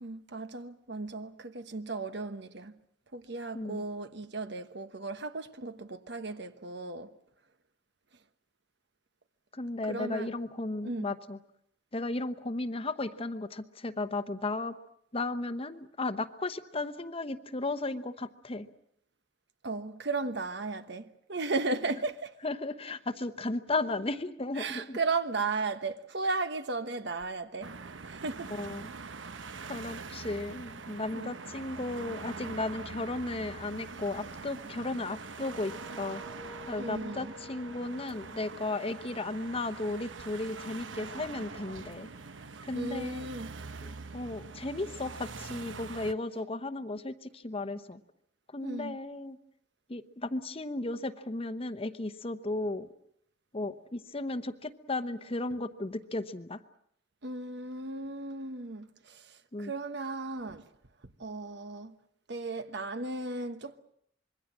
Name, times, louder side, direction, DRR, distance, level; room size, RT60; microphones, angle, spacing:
voice 1, 0.0-2.8 3.1-7.1 9.8-10.3 10.8-11.1 19.6-22.3 24.6-28.5 31.1-31.3 36.8-37.4 42.7-43.6 48.6-49.0 57.2-60.7 61.0-62.0 62.3-63.8, right 3 dB, 65° right, 1.2 m, -35 dB
voice 2, 9.5-11.4 11.9-14.7 15.1-18.7 22.4-25.0 28.5-28.9 29.7-36.2 36.7-42.1 42.6-43.3 43.8-48.0 48.5-49.4 49.9-52.9 53.5-56.6 59.5-59.7, left 2 dB, 30° left, 1.0 m, -35 dB
sound 1, 27.6-46.1, right 4 dB, 90° right, 1.0 m, -44 dB
sound 2, 35.3-40.2, left 1 dB, 5° left, 1.7 m, -52 dB
26.0 x 22.0 x 7.4 m
head